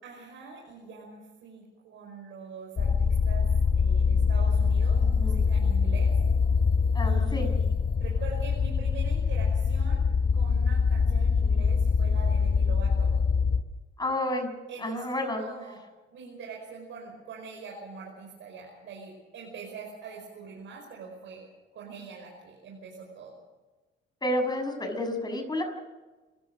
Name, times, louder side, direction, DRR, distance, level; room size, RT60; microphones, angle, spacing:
voice 1, 0.0-3.5 3.7-6.1 7.0-7.7 8.0-10.0 10.3-13.1 14.7-15.8 16.1-21.5 21.7-23.4, right 5 dB, 75° right, -2 dB, 5.6 m, -43 dB
sound 1, 2.8-13.6, left 5 dB, 40° left, 1.4 m, -24 dB
voice 2, 6.9-7.5 14.0-14.5 14.8-15.4 24.2-25.6, left 1 dB, 20° left, 4 dB, 7.0 m, -30 dB
27.0 x 15.5 x 6.5 m, 1.2 s
cardioid pair, 90°, 20 cm